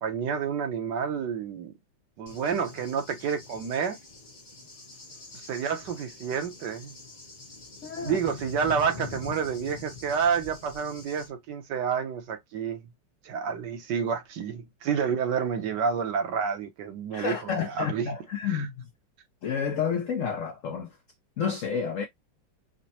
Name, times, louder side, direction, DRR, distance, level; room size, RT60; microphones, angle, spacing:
voice 1, 0.0-1.7 2.2-4.0 5.3-6.9 8.0-12.8 13.2-18.1 18.5-18.7, right 7 dB, 70° right, 1.4 m, -29 dB
Cricket / Thunder, 2.3-11.3, left 4 dB, 30° left, 0.8 m, -44 dB
voice 2, 7.8-8.2 17.1-18.9 19.4-21.0 21.4-22.1, left 6 dB, 80° left, 0.7 m, -30 dB
5.1 x 2.1 x 2.7 m
omnidirectional pair, 2.0 m